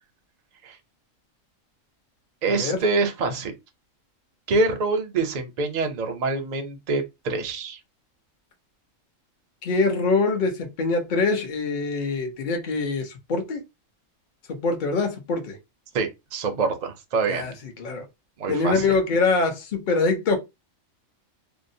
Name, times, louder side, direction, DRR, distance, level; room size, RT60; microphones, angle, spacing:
voice 1, 2.4-3.5 4.5-7.8 15.9-17.4 18.4-19.0, right 3 dB, 50° right, 0.5 m, -25 dB
voice 2, 9.6-13.6 14.5-15.5 17.3-17.5 17.8-18.0 18.5-20.4, left 3 dB, 45° left, 0.7 m, -24 dB
2.7 x 2.1 x 2.6 m
omnidirectional pair, 1.4 m